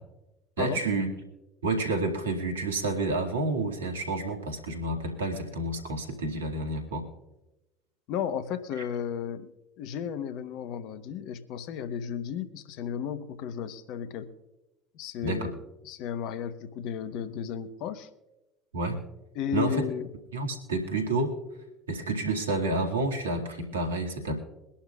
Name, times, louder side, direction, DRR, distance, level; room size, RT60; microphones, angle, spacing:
voice 1, 0.6-1.1 1.6-7.0 15.2-15.5 18.7-19.0 19.5-19.8 20.3-21.3 21.9-24.4, right 2 dB, 85° right, 3 dB, 2.0 m, -29 dB
voice 2, 8.1-9.5 9.8-14.3 14.9-15.5 15.8-18.1 19.3-20.1, left 8 dB, 60° left, 12 dB, 1.0 m, -34 dB
23.0 x 11.5 x 2.4 m, 0.99 s
hypercardioid pair, 65°, 0 cm